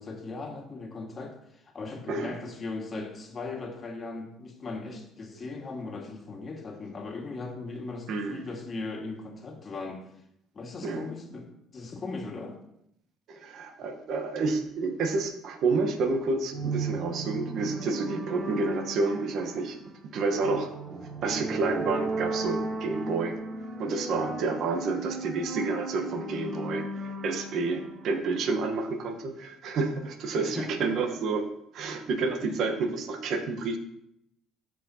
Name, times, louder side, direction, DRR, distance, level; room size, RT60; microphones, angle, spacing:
voice 1, 0.0-10.1 10.5-12.6 24.1-24.3 30.4-30.7, left 3 dB, 40° left, 2 dB, 1.7 m, -38 dB
voice 2, 8.1-8.4 10.8-11.1 13.3-19.8 20.1-23.4 23.8-31.5 31.7-33.8, right 3 dB, 60° right, 4 dB, 1.1 m, -29 dB
sound 1, 16.5-29.0, right 2 dB, 30° right, 2.9 m, -36 dB
13.5 x 4.8 x 2.8 m, 0.77 s
supercardioid pair, 70°, 0 cm